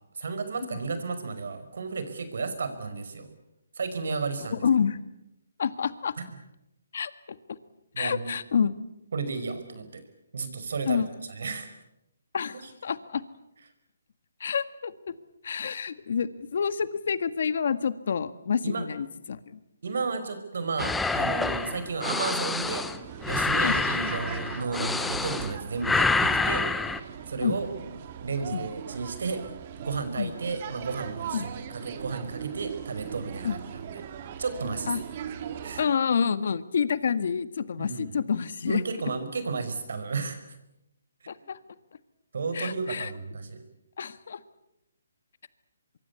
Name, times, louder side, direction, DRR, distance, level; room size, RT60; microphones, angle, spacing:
voice 1, 0.2-3.3 3.8-4.7 7.9-8.3 9.1-10.0 10.3-11.0 11.3-11.7 18.6-18.8 19.8-22.9 23.3-26.6 27.3-27.7 28.2-29.5 29.8-34.0 34.4-34.9 35.6-35.8 37.8-38.2 38.7-40.4 42.3-43.6, right 4 dB, 65° right, 10 dB, 5.4 m, -33 dB
voice 2, 4.5-5.0 5.6-6.2 6.9-7.4 8.0-8.7 10.9-11.1 12.3-13.2 14.4-15.1 15.4-19.6 23.6-23.8 27.4-27.6 28.5-28.7 30.2-30.3 31.3-31.5 33.4-33.6 34.9-35.0 35.8-38.8 41.3-41.6 42.5-43.1 44.0-44.4, left 6 dB, 60° left, 13 dB, 1.7 m, -28 dB
sound 1, 20.8-25.6 25.8-27.0, left 3 dB, 5° left, 1.0 m, -27 dB
sound 2, 22.6-35.9, right 8 dB, 35° right, 2.3 m, -40 dB
24.5 x 23.5 x 8.3 m, 0.87 s
hypercardioid pair, 155°, 0 cm